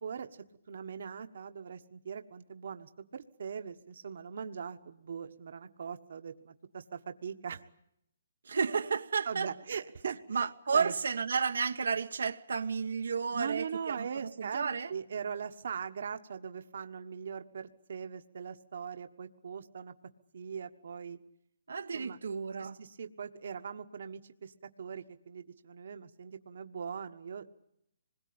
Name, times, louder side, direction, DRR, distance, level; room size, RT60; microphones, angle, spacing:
voice 1, 0.7-7.6 9.2-10.9 13.3-19.9 20.3-21.2 21.9-22.2 22.6-27.5, right 6 dB, 55° right, 1.4 m, -41 dB
voice 2, 8.4-9.5 10.3-14.9 21.7-22.8, right 5 dB, 85° right, 1.4 m, -32 dB
26.0 x 21.5 x 8.8 m
hypercardioid pair, 175°, 0 cm